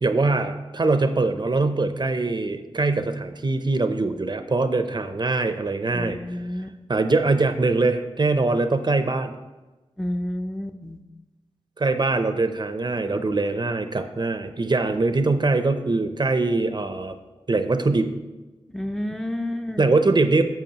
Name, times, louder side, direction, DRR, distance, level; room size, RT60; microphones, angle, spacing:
voice 1, 0.0-6.2 6.9-9.3 11.8-17.2 17.5-18.1 19.8-20.4, right 3 dB, 40° right, 8 dB, 0.6 m, -22 dB
voice 2, 5.9-6.7 10.0-11.0 18.7-19.9, left 1 dB, 5° left, 5 dB, 0.5 m, -30 dB
10.5 x 7.0 x 2.9 m, 1.2 s
wide cardioid pair, 75°, 11 cm